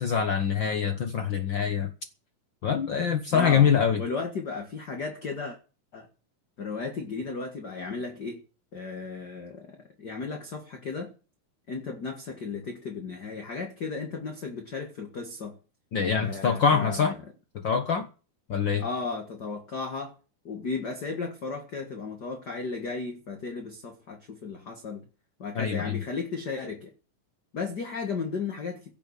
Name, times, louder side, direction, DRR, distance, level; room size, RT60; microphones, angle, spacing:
voice 1, 0.0-1.9 2.6-4.0 15.9-17.1 17.5-18.1 18.5-18.8 25.5-26.0, left 7 dB, 80° left, 1.0 m, -24 dB
voice 2, 3.3-3.7 4.0-5.6 5.9-6.1 6.6-8.4 8.7-11.1 11.7-15.6 16.2-17.2 18.8-20.1 20.4-25.0 25.4-26.9 27.5-28.9, left 4 dB, 40° left, 1.8 m, -35 dB
17.0 x 7.1 x 8.3 m
omnidirectional pair, 3.9 m